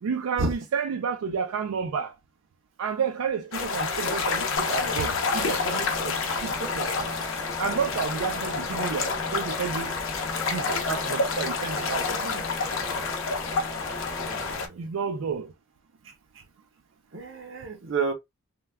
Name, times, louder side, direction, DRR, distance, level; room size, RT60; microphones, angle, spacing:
voice 1, 0.0-2.1 2.8-7.1 7.6-9.9 10.5-12.4 14.8-15.5, right 6 dB, 90° right, 0.4 m, -31 dB
sound 1, 3.5-14.7, left 4 dB, 80° left, 0.6 m, -29 dB
sound 2, 4.6-14.6, left 2 dB, 15° left, 0.4 m, -38 dB
voice 2, 14.2-14.9 16.0-16.1 17.1-18.1, right 3 dB, 65° right, 0.7 m, -30 dB
2.2 x 2.1 x 3.3 m
head